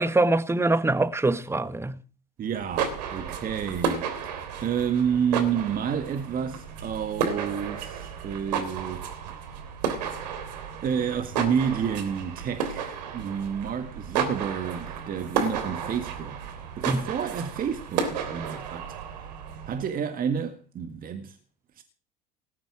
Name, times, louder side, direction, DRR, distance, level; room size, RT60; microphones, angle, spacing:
voice 1, 0.0-2.0 16.8-17.1, right 2 dB, 10° right, 1.3 m, -24 dB
voice 2, 2.4-9.0 10.8-16.4 16.8-19.0 19.7-21.4 21.8-21.9, right 7 dB, 45° right, 1.9 m, -30 dB
sound 1, 2.5-19.9, right 6 dB, 80° right, 3.4 m, -33 dB
19.5 x 12.5 x 4.9 m
hypercardioid pair, 70°, 21 cm